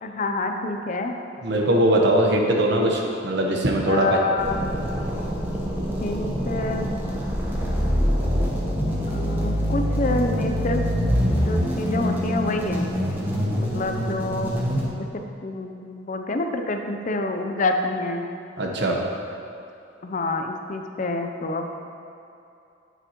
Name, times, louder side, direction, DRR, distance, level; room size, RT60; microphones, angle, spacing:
voice 1, 0.0-1.2 3.9-4.6 6.0-7.0 9.1-10.8 11.2-12.9 13.5-14.5 15.0-18.3 20.0-21.8, left 2 dB, 40° left, 5 dB, 0.5 m, -27 dB
voice 2, 1.4-4.2 18.6-19.0, right 1 dB, 60° right, 0 dB, 1.0 m, -21 dB
sound 1, 4.4-14.9, equal, 10° right, 1.0 m, -25 dB
9.2 x 8.0 x 3.0 m, 2.7 s
head